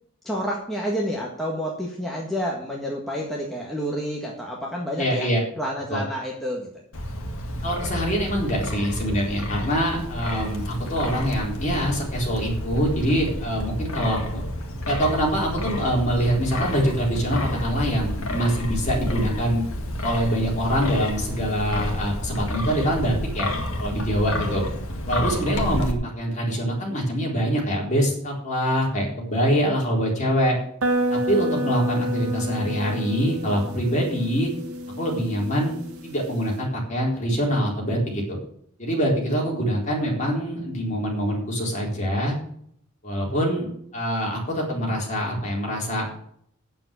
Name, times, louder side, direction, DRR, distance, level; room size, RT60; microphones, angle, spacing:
voice 1, 0.2-5.3 5.6-6.7 24.4-24.6, equal, ahead, -3 dB, 1.7 m, -29 dB
voice 2, 5.0-5.4 5.9-6.0 7.6-14.4 14.8-19.6 20.0-23.5 23.8-24.6 25.1-30.6 31.1-34.5 35.0-35.7 36.0-38.4 38.8-42.3 43.0-46.3, equal, 35° left, -2 dB, 4.0 m, -24 dB
Wind, 6.9-25.9, left 1 dB, 75° left, 1.8 m, -30 dB
sound 1, 30.8-36.6, equal, 75° right, 1.8 m, -29 dB
8.8 x 7.4 x 8.3 m, 0.67 s
head